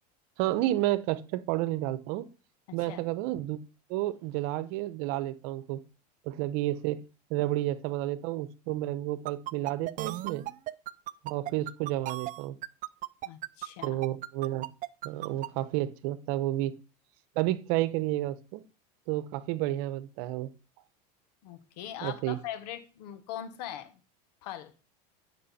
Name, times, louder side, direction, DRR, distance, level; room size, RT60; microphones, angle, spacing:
voice 1, 0.4-2.3 2.7-3.6 3.9-5.8 6.3-7.0 7.3-10.4 11.2-12.6 13.8-14.6 15.0-16.8 17.4-18.6 19.1-20.5 22.0-22.4, right 15 dB, 65° right, 1.0 m, -31 dB
voice 2, 2.7-3.0 13.2-14.0 21.4-23.9 24.4-24.7, left 11 dB, 75° left, 1.6 m, -41 dB
sound 1, 9.3-15.5, right 15 dB, 40° right, 0.6 m, -36 dB
11.0 x 6.3 x 4.3 m
supercardioid pair, 110°, 21 cm